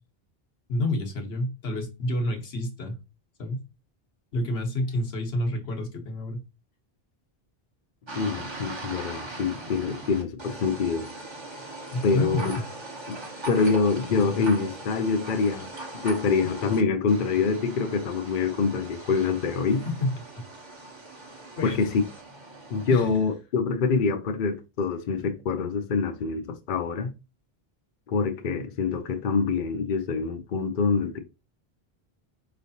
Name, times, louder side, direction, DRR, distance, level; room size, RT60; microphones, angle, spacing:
voice 1, 0.7-3.0 3.4-3.6 4.3-6.4 11.9-12.6 19.9-20.2 21.6-21.8 22.9-23.1, left 1 dB, 85° left, 1.3 m, -28 dB
sound 1, 8.1-16.8 17.1-23.0, right 2 dB, 30° right, 0.9 m, -40 dB
voice 2, 8.2-11.1 12.0-12.5 13.1-13.2 13.5-15.7 15.9-19.8 21.6-22.0 22.7-27.1 28.1-31.2, left 4 dB, 60° left, 0.7 m, -25 dB
4.8 x 3.2 x 2.7 m
omnidirectional pair, 1.0 m